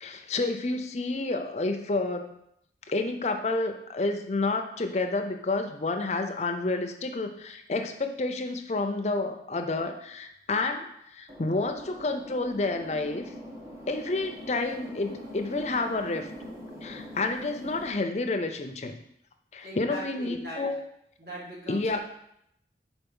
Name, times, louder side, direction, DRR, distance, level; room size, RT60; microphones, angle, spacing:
voice 1, 0.0-2.3 2.9-13.3 13.9-16.3 16.8-18.9 19.5-20.8 21.7-22.0, left 3 dB, 40° left, 6 dB, 0.5 m, -29 dB
sound 1, 11.3-17.9, equal, 20° right, 1.0 m, -43 dB
voice 2, 19.6-20.7 21.2-22.0, equal, 60° right, -5 dB, 1.9 m, -40 dB
4.4 x 4.3 x 5.4 m, 0.75 s
head